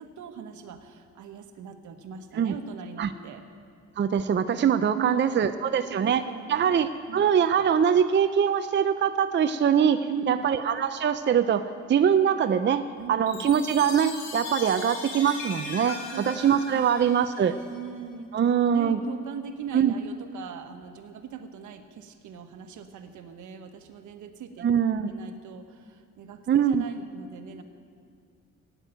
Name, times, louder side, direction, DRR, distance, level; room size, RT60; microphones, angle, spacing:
voice 1, 0.0-3.4 4.9-6.8 7.1-7.3 10.1-10.5 13.0-13.5 16.1-16.5 16.8-16.9 17.7-18.3 18.7-24.7 25.1-27.6, right 7 dB, 75° right, 7 dB, 1.3 m, -40 dB
voice 2, 4.0-6.2 6.5-17.5 18.3-19.0 19.7-19.9 24.6-25.1 26.5-26.8, right 8 dB, 40° right, 9 dB, 0.6 m, -23 dB
Chime, 13.3-17.8, left 4 dB, 85° left, 2.5 m, -39 dB
13.0 x 9.3 x 9.0 m, 2.2 s
cardioid pair, 90°, 30 cm